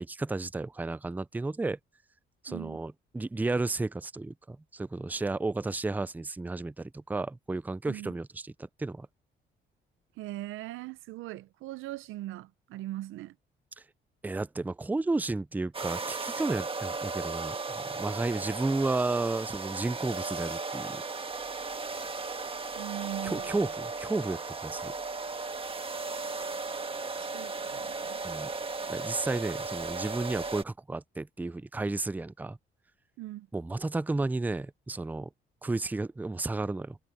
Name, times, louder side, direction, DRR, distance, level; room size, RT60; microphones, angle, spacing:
voice 1, 0.0-1.8 2.4-9.1 14.2-21.0 23.2-24.9 28.2-28.5 28.9-32.6 33.5-35.3 35.6-37.0, right 3 dB, 10° right, 0.4 m, -32 dB
voice 2, 2.5-2.8 7.9-8.1 10.2-13.3 22.7-23.6 27.1-28.2 33.2-33.5, right 16 dB, 90° right, 0.6 m, -40 dB
sound 1, 15.7-30.6, right 3 dB, 25° right, 1.6 m, -36 dB
cardioid pair, 90°, 20 cm